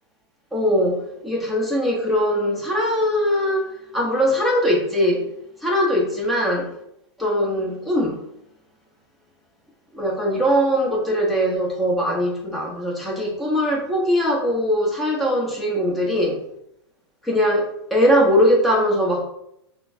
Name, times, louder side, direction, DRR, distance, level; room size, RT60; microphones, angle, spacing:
voice 1, 0.5-5.3 5.6-6.7 7.2-8.2 9.9-16.4 17.2-19.2, equal, ahead, -4 dB, 1.2 m, -21 dB
5.8 x 2.3 x 2.8 m, 0.77 s
hypercardioid pair, 120°, 14 cm